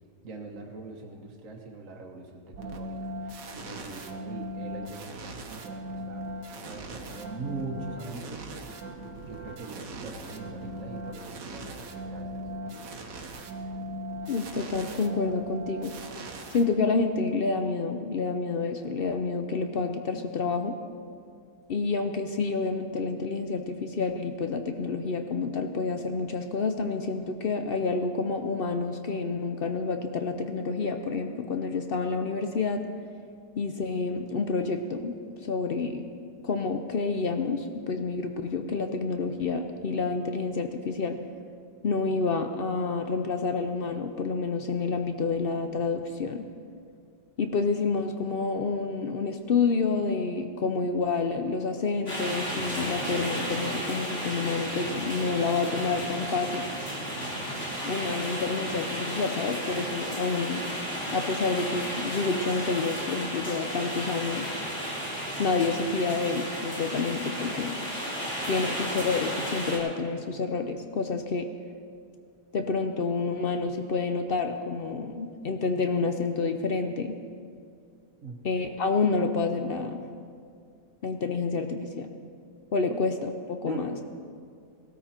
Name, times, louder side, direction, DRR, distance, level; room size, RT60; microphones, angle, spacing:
voice 1, 0.2-6.3 6.6-8.4 9.2-12.9 78.2-78.4 83.7-84.0, right 3 dB, 50° right, -1 dB, 1.5 m, -41 dB
sound 1, 2.5-17.2, right 1 dB, 75° right, 1.8 m, -39 dB
voice 2, 14.3-15.9 16.5-20.8 21.7-32.9 33.6-35.1 35.4-36.0 36.4-41.2 41.8-46.4 47.4-56.7 57.8-60.6 61.1-64.5 65.4-67.8 68.5-71.5 72.5-77.2 78.4-80.0 81.0-82.1 82.7-84.0, left 4 dB, 75° left, 6 dB, 0.5 m, -28 dB
sound 2, 52.1-69.8, equal, 40° left, 4.2 m, -33 dB
19.0 x 13.5 x 4.4 m, 2.3 s
omnidirectional pair, 1.9 m